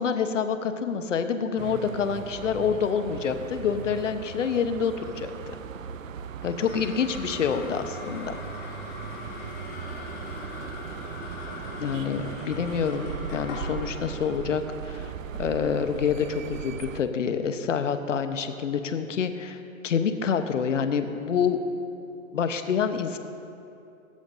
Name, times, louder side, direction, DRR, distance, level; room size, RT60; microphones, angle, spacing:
voice 1, 0.0-5.6 6.4-8.4 11.8-15.1 15.4-21.6 22.3-23.2, left 6 dB, 60° left, 9 dB, 1.0 m, -27 dB
sound 1, 1.6-17.0, right 7 dB, 65° right, 0.7 m, -38 dB
sound 2, 6.4-17.0, left 3 dB, 30° left, 3.3 m, -42 dB
23.0 x 14.0 x 2.6 m, 2.7 s
hypercardioid pair, 135°, 42 cm